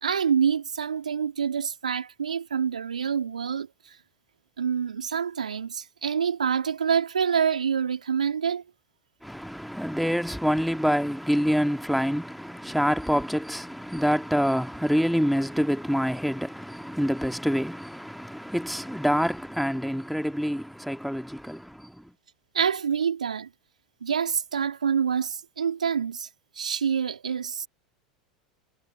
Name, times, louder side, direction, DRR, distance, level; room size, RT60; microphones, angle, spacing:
voice 1, 0.0-4.0 4.6-8.6 22.5-23.5 24.0-26.3 26.6-27.7, right 7 dB, 85° right, 3.5 m, -26 dB
voice 2, 9.2-22.1, equal, ahead, 2.1 m, -26 dB
figure-of-eight pair, 80°, 4 cm